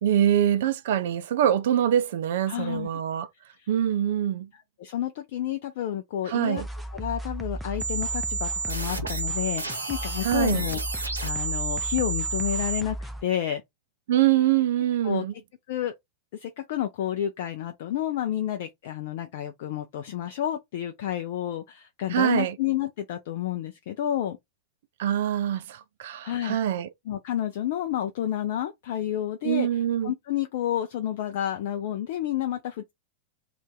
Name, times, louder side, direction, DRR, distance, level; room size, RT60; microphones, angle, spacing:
voice 1, 0.0-3.3 3.7-4.5 6.3-6.7 10.2-10.6 14.1-15.3 22.1-22.6 25.0-26.9 29.4-30.1, right 11 dB, 55° right, 0.4 m, -24 dB
voice 2, 2.5-2.9 4.8-6.6 6.9-10.8 11.2-13.6 15.0-15.2 15.7-15.9 16.3-24.4 26.2-26.6 27.1-29.7 30.0-32.9, left 11 dB, 55° left, 0.4 m, -30 dB
sound 1, 6.6-13.2, right 1 dB, ahead, 0.5 m, -35 dB
sound 2, 7.8-12.8, right 4 dB, 80° right, 0.8 m, -31 dB
2.6 x 2.4 x 3.6 m
figure-of-eight pair, 90°, 0 cm